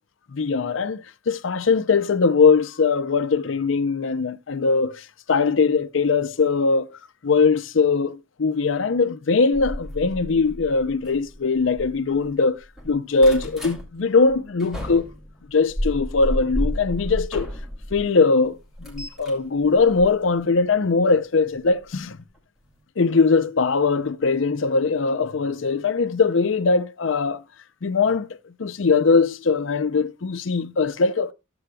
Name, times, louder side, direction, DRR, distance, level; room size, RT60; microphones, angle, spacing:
voice 1, 0.3-6.9 7.2-12.6 12.8-15.1 15.5-17.5 17.9-22.2 23.0-27.4 27.8-28.3 28.6-31.3, left 4 dB, 75° left, 0.6 m, -21 dB
sound 1, 9.5-12.3 12.6-13.8 14.3-18.0 18.4-20.6 21.7-21.9 22.3-22.4 22.7-22.8, equal, ahead, 2.4 m, -32 dB
14.0 x 7.7 x 2.2 m
head